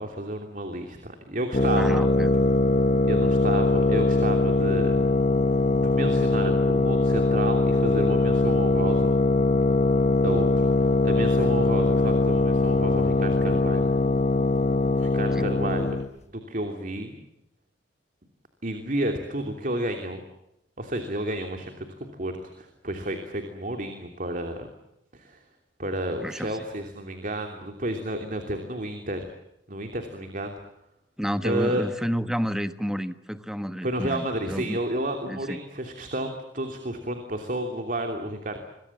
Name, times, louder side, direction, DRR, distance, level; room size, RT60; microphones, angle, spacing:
voice 1, 0.0-2.0 3.0-5.0 5.8-9.1 10.2-10.5 10.8-13.9 14.9-16.0 16.3-17.3 18.6-20.2 20.8-21.9 22.2-24.7 25.1-25.4 25.8-29.3 29.7-30.5 31.4-31.8 33.8-38.6, right 1 dB, 45° right, 5 dB, 3.0 m, -31 dB
sound 1, 1.5-16.1, left 2 dB, 35° left, 0.9 m, -22 dB
voice 2, 1.7-2.3 15.3-15.5 26.2-26.5 31.2-34.8 35.3-35.6, equal, 5° right, 10 dB, 1.2 m, -30 dB
27.5 x 23.0 x 7.4 m, 0.86 s
head